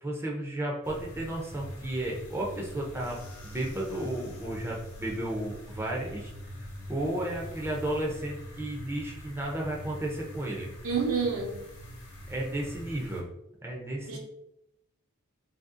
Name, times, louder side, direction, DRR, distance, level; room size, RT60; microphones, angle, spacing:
voice 1, 0.0-6.3 6.9-10.7 12.3-13.3 13.6-14.2, right 1 dB, 10° right, -2 dB, 0.5 m, -33 dB
sound 1, 0.8-13.2, equal, 85° left, 1.0 m, -43 dB
voice 2, 10.8-11.6 14.1-14.2, right 5 dB, 70° right, 1 dB, 0.9 m, -28 dB
2.9 x 2.7 x 3.7 m, 0.82 s
head